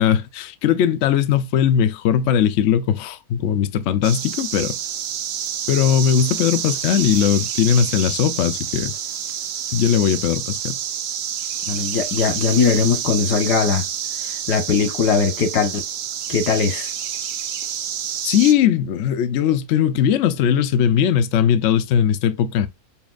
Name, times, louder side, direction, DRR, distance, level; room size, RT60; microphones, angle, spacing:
voice 1, 0.0-4.8 5.7-8.9 9.7-10.8 18.2-22.7, left 9 dB, 65° left, 0.8 m, -19 dB
sound 1, 4.0-18.5, right 9 dB, 85° right, 0.5 m, -28 dB
voice 2, 11.7-13.8 14.5-15.8 16.3-16.9, left 5 dB, 90° left, 1.7 m, -19 dB
7.1 x 2.4 x 2.4 m
omnidirectional pair, 1.7 m